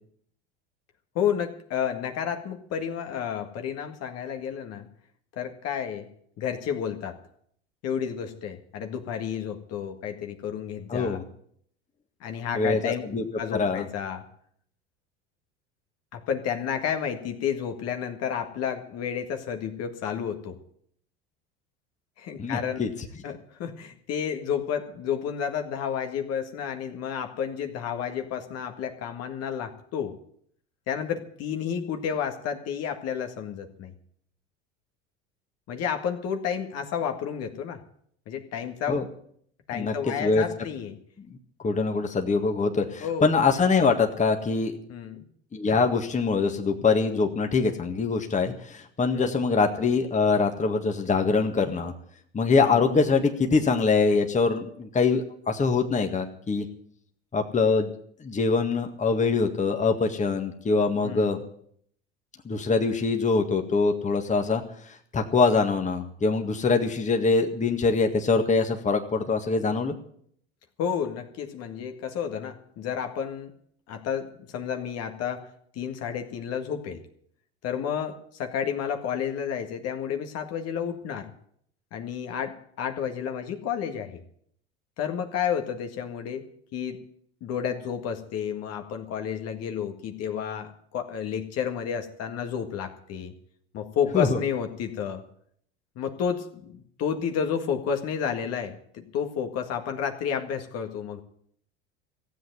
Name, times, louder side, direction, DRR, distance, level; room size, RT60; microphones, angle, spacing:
voice 1, 1.2-4.9 5.4-6.1 6.4-7.2 7.8-11.2 12.2-13.0 13.4-14.3 16.1-20.6 22.2-22.8 23.2-30.2 30.9-33.9 35.7-37.8 38.3-39.0 39.7-41.0 43.0-43.3 44.9-45.3 49.1-49.4 52.6-52.8 61.0-61.4 70.8-73.5 73.9-77.0 77.6-81.3 81.9-84.2 85.0-86.5 86.7-87.0 87.4-93.3 93.7-95.2 96.0-101.2, left 8 dB, 50° left, 5 dB, 1.8 m, -31 dB
voice 2, 10.9-11.2 12.5-13.2 13.5-13.8 22.4-22.9 38.9-39.0 39.7-40.0 40.2-40.4 41.2-41.3 41.6-44.7 45.5-51.9 52.3-56.7 57.3-57.9 58.2-61.4 62.5-64.6 65.1-70.0 94.1-94.4, left 4 dB, 25° left, 4 dB, 1.8 m, -24 dB
15.5 x 8.1 x 9.3 m, 0.65 s
hypercardioid pair, 80°, 31 cm